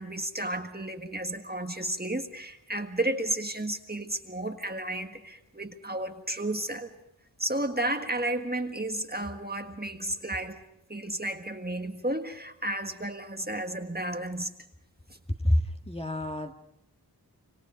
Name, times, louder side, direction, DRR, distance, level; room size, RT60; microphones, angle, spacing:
voice 1, 0.0-6.9 7.4-10.6 10.9-14.5, right 1 dB, 25° right, 5 dB, 1.7 m, -32 dB
voice 2, 15.4-16.5, left 1 dB, 15° left, 4 dB, 1.8 m, -27 dB
26.0 x 25.0 x 5.2 m, 0.82 s
wide cardioid pair, 45°, 37 cm